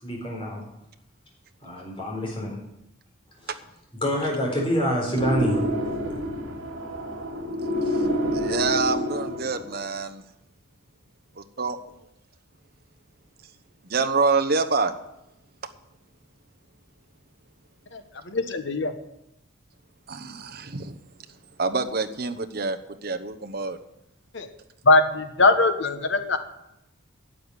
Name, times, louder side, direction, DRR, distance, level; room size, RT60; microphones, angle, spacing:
voice 1, 0.0-0.6 1.6-2.6 3.4-3.5 4.0-6.0 7.8-8.1, equal, 25° left, -2 dB, 4.0 m, -27 dB
sound 1, 5.2-9.8, equal, 75° right, 3.1 m, -28 dB
voice 2, 8.3-10.2 11.4-11.8 13.8-14.9 20.1-21.0 21.6-23.8, right 4 dB, 50° right, 7 dB, 0.9 m, -26 dB
voice 3, 18.3-18.9 24.3-24.5 24.9-26.4, left 3 dB, 60° left, 8 dB, 1.2 m, -21 dB
11.5 x 6.8 x 9.7 m, 0.85 s
head